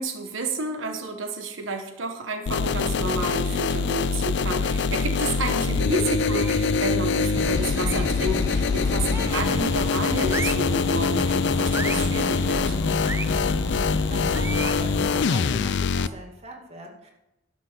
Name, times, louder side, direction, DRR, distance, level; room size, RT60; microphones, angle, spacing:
voice 1, 0.0-12.8, right 2 dB, 80° right, 5 dB, 1.3 m, -31 dB
sound 1, 2.5-16.1, left 5 dB, 60° left, 0.4 m, -24 dB
sound 2, 6.2-6.7 7.8-8.2 9.1-9.5 10.3-10.7 11.7-12.1 13.0-13.3 14.3-14.8, right 3 dB, 15° right, 0.5 m, -34 dB
sound 3, 7.3-15.3, equal, 15° left, 1.2 m, -31 dB
voice 2, 14.0-17.1, right 1 dB, 35° right, 1 dB, 2.0 m, -40 dB
11.5 x 6.1 x 6.8 m, 0.94 s
head